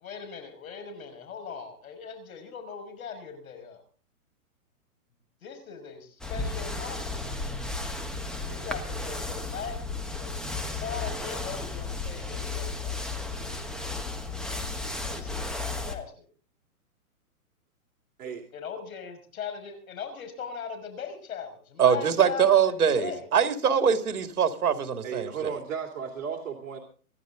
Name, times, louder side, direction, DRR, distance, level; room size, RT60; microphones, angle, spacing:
voice 1, 0.0-3.8 5.4-7.2 8.5-9.8 10.2-10.3 10.8-13.0 15.1-16.3 18.5-23.3, left 6 dB, 70° left, 7 dB, 5.8 m, -39 dB
sound 1, 6.2-15.9, left 3 dB, ahead, 1.2 m, -34 dB
voice 2, 21.8-25.5, right 7 dB, 75° right, 7 dB, 2.4 m, -23 dB
voice 3, 25.0-26.8, right 7 dB, 60° right, 1 dB, 3.2 m, -35 dB
25.0 x 11.5 x 3.8 m, 0.41 s
hypercardioid pair, 150°, 44 cm